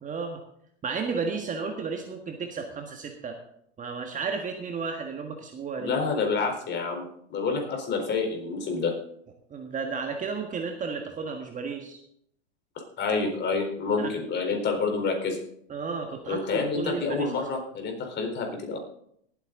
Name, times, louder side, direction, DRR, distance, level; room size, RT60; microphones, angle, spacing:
voice 1, 0.0-0.4 0.8-3.3 3.8-5.9 9.5-12.0 14.0-14.1 15.7-17.5, right 5 dB, 20° right, 3 dB, 1.7 m, -33 dB
voice 2, 5.8-8.9 13.0-15.4 16.3-18.8, left 4 dB, 30° left, 3 dB, 4.1 m, -28 dB
18.5 x 8.7 x 3.9 m, 0.70 s
hypercardioid pair, 105°, 34 cm